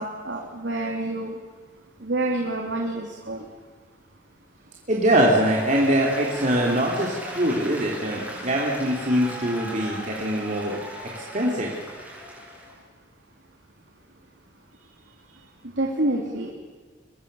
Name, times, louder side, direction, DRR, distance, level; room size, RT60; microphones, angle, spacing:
voice 1, 0.0-1.3 2.0-3.4 15.8-16.5, right 2 dB, 80° right, 1 dB, 2.9 m, -27 dB
voice 2, 4.9-10.8 11.1-11.7, right 1 dB, 40° right, -3 dB, 3.3 m, -23 dB
Applause, 5.2-12.8, equal, 10° right, 7.9 m, -38 dB
24.0 x 22.0 x 7.0 m, 1.4 s
head